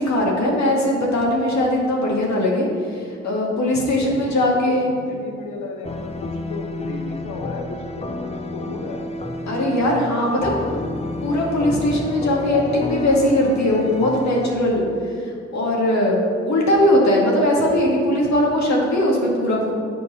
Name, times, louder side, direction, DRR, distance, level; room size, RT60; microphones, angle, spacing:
voice 1, 0.0-4.9 9.5-10.7 11.2-14.8 15.5-19.7, left 1 dB, 65° left, -2 dB, 2.0 m, -20 dB
voice 2, 4.0-9.0 10.2-10.9, left 3 dB, 80° left, 2 dB, 1.1 m, -35 dB
Old vinyl piano song, 5.8-14.5, left 2 dB, 20° left, 0.8 m, -30 dB
6.8 x 4.8 x 6.4 m, 2.4 s
hypercardioid pair, 45°, 31 cm